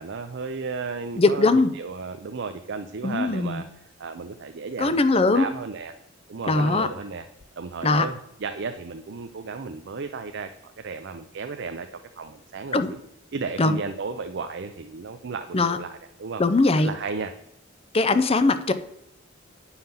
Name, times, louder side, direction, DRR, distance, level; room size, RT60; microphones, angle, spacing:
voice 1, 0.0-3.6 4.0-5.9 6.3-7.2 7.6-11.9 12.2-13.0 13.3-16.4 16.8-17.3, right 4 dB, 60° right, 7 dB, 0.5 m, -34 dB
voice 2, 1.2-1.7 3.0-3.6 4.8-5.5 6.5-6.9 7.8-8.0 12.7-12.9 13.6-13.8 15.5-15.8 16.4-16.9 17.9-18.7, left 3 dB, 30° left, 11 dB, 0.6 m, -20 dB
9.0 x 5.7 x 5.7 m, 0.78 s
head